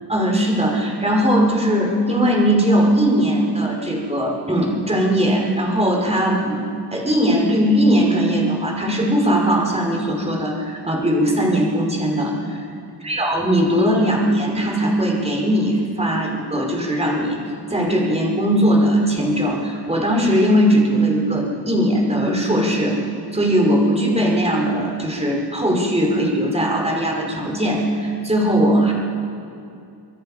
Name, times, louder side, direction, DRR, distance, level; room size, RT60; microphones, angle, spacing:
voice 1, 0.1-6.6 6.9-12.6 13.0-17.4 17.7-23.0 23.3-28.9, equal, 15° right, -1 dB, 5.4 m, -19 dB
26.0 x 22.5 x 5.8 m, 2.5 s
cardioid pair, 95°, 43 cm